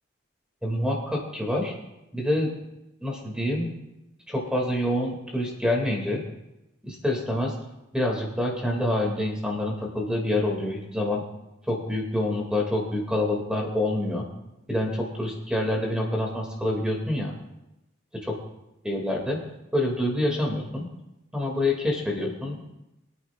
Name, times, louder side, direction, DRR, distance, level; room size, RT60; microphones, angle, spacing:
voice 1, 0.6-1.7 2.1-2.5 3.0-3.7 4.3-6.2 6.8-7.5 7.9-11.2 11.7-14.2 14.7-17.3 18.8-19.4 19.7-20.9 21.3-22.8, left 1 dB, 5° right, -1 dB, 2.2 m, -27 dB
22.5 x 9.4 x 2.4 m, 0.92 s
head